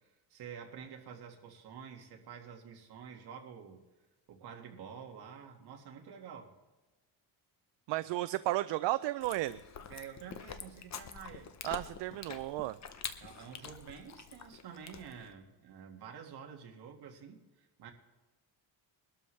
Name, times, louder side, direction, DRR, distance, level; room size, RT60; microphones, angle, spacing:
voice 1, 0.0-3.9 4.3-6.5 9.9-11.6 13.2-17.9, right 7 dB, 60° right, 2 dB, 2.0 m, -49 dB
voice 2, 7.9-9.6 11.6-12.8, right 16 dB, 80° right, 14 dB, 0.5 m, -33 dB
Chewing mastication, 9.2-15.3, left 7 dB, 40° left, 0.8 m, -46 dB
22.0 x 12.5 x 3.3 m, 1.2 s
cardioid pair, 160°, 43 cm